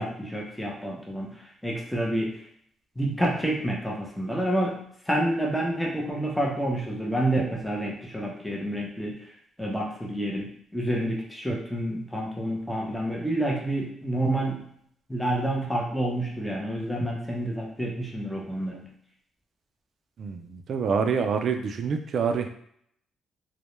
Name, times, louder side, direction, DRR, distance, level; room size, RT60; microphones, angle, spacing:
voice 1, 0.0-2.3 3.0-4.8 5.1-9.2 9.6-14.6 15.1-18.9, right 1 dB, 5° left, -2 dB, 0.6 m, -28 dB
voice 2, 20.2-22.5, right 6 dB, 60° right, 6 dB, 0.3 m, -26 dB
2.1 x 2.0 x 3.0 m, 0.68 s
cardioid pair, 90°, 0 cm